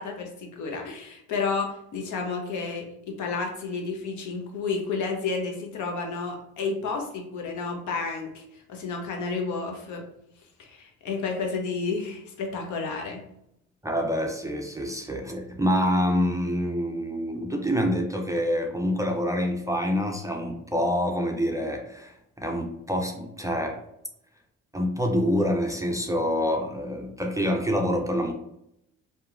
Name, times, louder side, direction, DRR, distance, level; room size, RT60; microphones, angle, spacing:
voice 1, 0.0-10.0 10.6-13.2, left 4 dB, 80° left, 2 dB, 0.7 m, -31 dB
voice 2, 13.8-22.1 22.4-23.8 24.7-28.3, equal, 10° right, 2 dB, 0.3 m, -26 dB
2.8 x 2.2 x 2.4 m, 0.77 s
cardioid pair, 90°, 30 cm